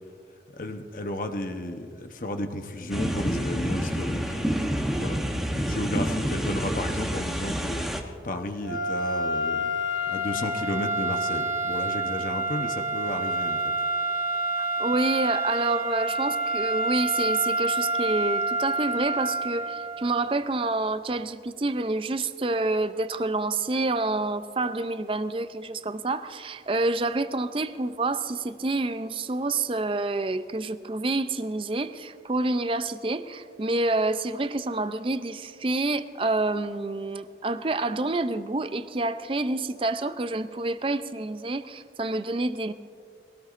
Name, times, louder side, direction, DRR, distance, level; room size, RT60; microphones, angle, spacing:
voice 1, 0.5-9.7 10.1-13.7, left 1 dB, 50° left, 5 dB, 0.9 m, -33 dB
sound 1, 2.9-8.0, equal, ahead, 0.9 m, -28 dB
sound 2, 8.6-20.2, right 1 dB, 50° right, 2.8 m, -28 dB
voice 2, 14.6-42.7, right 2 dB, 30° right, 12 dB, 0.5 m, -28 dB
22.5 x 17.0 x 2.5 m, 2.2 s
head